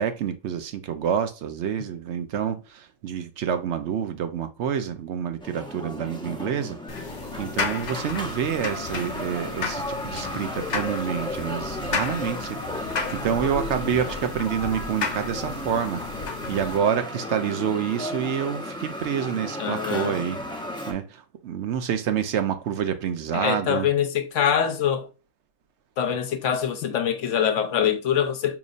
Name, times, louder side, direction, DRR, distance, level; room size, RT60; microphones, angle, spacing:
voice 1, 0.0-7.1 7.4-16.0 16.5-20.4 20.9-23.9, right 8 dB, 70° right, 0.9 m, -28 dB
sound 1, 5.4-20.9, left 1 dB, 5° left, 0.6 m, -34 dB
sound 2, 6.9-16.8, left 4 dB, 45° left, 0.6 m, -33 dB
voice 2, 19.6-20.2 23.3-25.1 26.0-28.6, left 8 dB, 75° left, 1.1 m, -24 dB
5.2 x 3.0 x 2.4 m
omnidirectional pair, 1.3 m